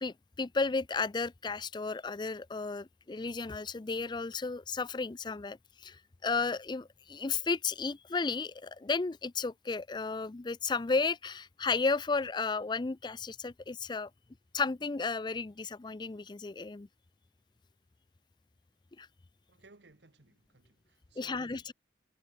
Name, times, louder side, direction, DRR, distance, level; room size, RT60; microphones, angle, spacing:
voice 1, 0.0-14.1 14.5-16.9 19.0-19.1 21.2-21.7, left 4 dB, 25° left, 0.4 m, -33 dB
voice 2, 19.5-21.7, right 3 dB, 80° right, 1.4 m, -60 dB
head